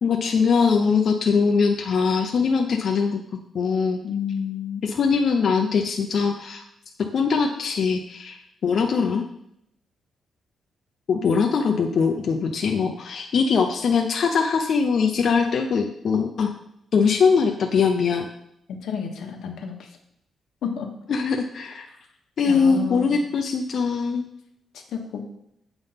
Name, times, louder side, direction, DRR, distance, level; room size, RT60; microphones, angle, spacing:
voice 1, 0.0-3.2 3.5-4.0 4.8-6.6 7.1-9.2 11.1-16.5 16.9-18.3 21.1-21.8 22.4-24.3, left 5 dB, 50° left, 3 dB, 0.6 m, -22 dB
voice 2, 4.0-4.9 18.7-19.9 20.6-20.9 22.5-23.1 24.9-25.2, left 7 dB, 85° left, 3 dB, 1.1 m, -30 dB
8.0 x 3.6 x 5.6 m, 0.76 s
wide cardioid pair, 175°, 0 cm